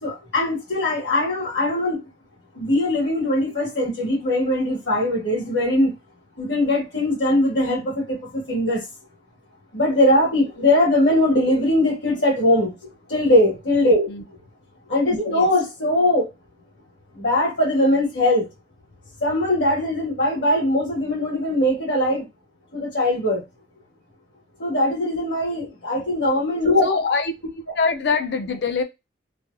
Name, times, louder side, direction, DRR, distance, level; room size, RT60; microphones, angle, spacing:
voice 1, 0.0-2.0 2.5-5.9 6.4-8.9 9.7-12.8 13.1-14.1 14.9-16.3 17.1-18.5 19.2-22.3 22.7-23.4 24.6-26.9, left 1 dB, 75° left, 1.6 m, -21 dB
voice 2, 26.8-27.3 27.8-28.8, left 4 dB, 60° left, 0.5 m, -23 dB
3.3 x 2.3 x 2.5 m
head